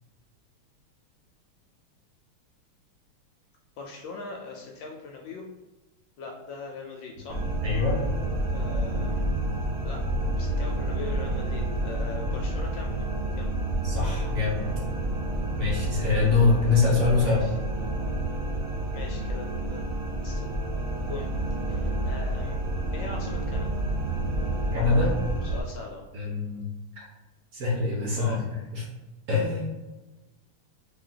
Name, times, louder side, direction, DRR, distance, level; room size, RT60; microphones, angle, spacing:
voice 1, 3.8-5.4 6.2-7.4 8.5-9.2 9.8-10.1 10.4-13.1 13.4-13.5 17.1-17.6 18.9-19.8 20.2-20.5 21.0-21.3 21.7-22.6 22.9-23.8 25.4-26.0 28.2-28.4, left 3 dB, 75° left, 1 dB, 1.1 m, -40 dB
sound 1, 7.3-25.6, right 1 dB, 85° right, 0.7 m, -29 dB
voice 2, 7.6-8.0 13.8-14.7 15.6-17.4 24.7-25.2 26.1-26.6 27.0-27.1 27.5-28.4 28.7-28.8 29.3-29.7, left 4 dB, 55° right, -4 dB, 1.5 m, -24 dB
3.9 x 3.3 x 3.7 m, 1.1 s
omnidirectional pair, 2.4 m